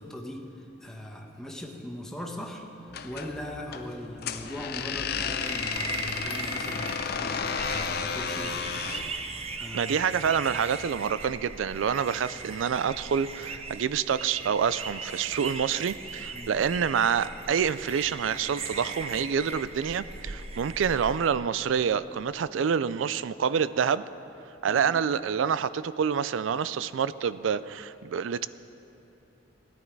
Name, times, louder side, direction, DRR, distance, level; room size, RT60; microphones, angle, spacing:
voice 1, 0.0-2.7 3.0-8.9 9.6-9.9 16.3-16.7 24.7-24.9, left 1 dB, 5° left, 0 dB, 1.0 m, -40 dB
sound 1, 2.9-9.1, left 6 dB, 55° left, 0.6 m, -33 dB
sound 2, 5.4-21.3, right 4 dB, 30° right, 0.6 m, -38 dB
voice 2, 9.7-24.0 24.6-28.5, right 7 dB, 85° right, 16 dB, 0.4 m, -27 dB
17.0 x 10.5 x 4.6 m, 3.0 s
head